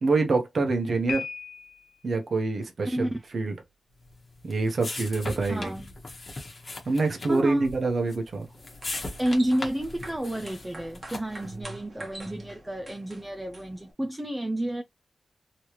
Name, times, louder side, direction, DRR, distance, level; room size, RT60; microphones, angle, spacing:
voice 1, 0.0-1.3 2.0-3.5 4.4-5.7 6.8-8.5, right 3 dB, 50° right, 1.0 m, -26 dB
Piano, 1.1-2.0, left 6 dB, 80° left, 1.1 m, -36 dB
voice 2, 2.8-3.2 5.5-5.9 7.3-7.7 9.2-14.8, right 1 dB, 10° right, 0.4 m, -30 dB
sound 1, 4.0-11.5, left 2 dB, 30° left, 1.1 m, -40 dB
sound 2, 8.5-13.9, right 1 dB, 30° right, 1.2 m, -46 dB
3.2 x 3.1 x 2.9 m
wide cardioid pair, 175°, 0 cm